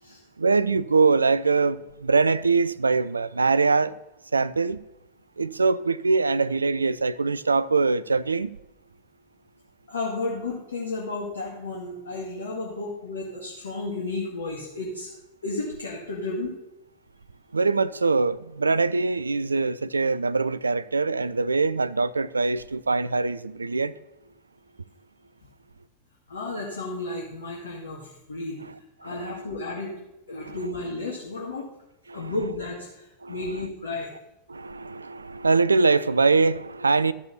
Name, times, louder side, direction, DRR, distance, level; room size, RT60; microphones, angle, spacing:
voice 1, 0.4-4.0 4.3-4.8 5.4-8.5 17.5-23.9 28.6-28.7 29.0-29.1 30.4-30.6 32.1-32.3 33.2-33.4 34.5-37.1, right 4 dB, 75° right, 0.4 m, -23 dB
voice 2, 9.9-15.1 15.4-16.5 26.3-28.6 29.0-29.9 30.3-31.7 32.1-34.1, left 2 dB, 70° left, 2.3 m, -33 dB
13.0 x 6.9 x 7.1 m
figure-of-eight pair, 90°, 0 cm